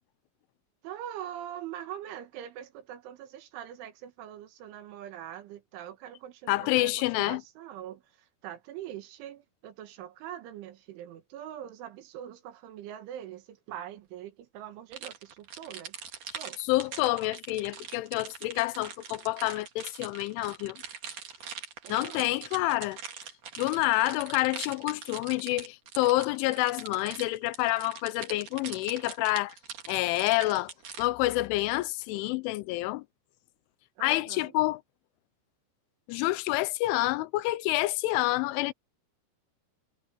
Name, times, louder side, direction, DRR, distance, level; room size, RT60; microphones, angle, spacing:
voice 1, 0.8-16.0 16.3-16.6 21.8-22.3 34.0-34.6, right 11 dB, 80° right, 4.0 m, -43 dB
voice 2, 6.5-7.4 16.7-20.8 21.9-23.0 23.6-29.5 29.9-30.7 31.0-33.0 34.0-34.8 36.1-38.7, left 18 dB, 85° left, 3.1 m, -28 dB
sound 1, 14.9-31.1, right 7 dB, 45° right, 3.6 m, -42 dB
omnidirectional pair, 5.5 m